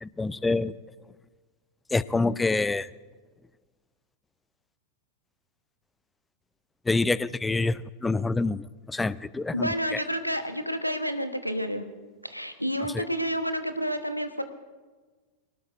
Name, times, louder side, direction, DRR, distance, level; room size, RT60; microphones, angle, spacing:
voice 1, 0.0-0.7 1.9-2.9 6.9-10.0 12.9-13.0, left 3 dB, 10° left, 19 dB, 0.4 m, -27 dB
voice 2, 9.5-11.8 12.2-14.4, equal, 90° left, 9 dB, 1.1 m, -29 dB
23.0 x 19.5 x 2.6 m, 1.4 s
figure-of-eight pair, 90°, 0 cm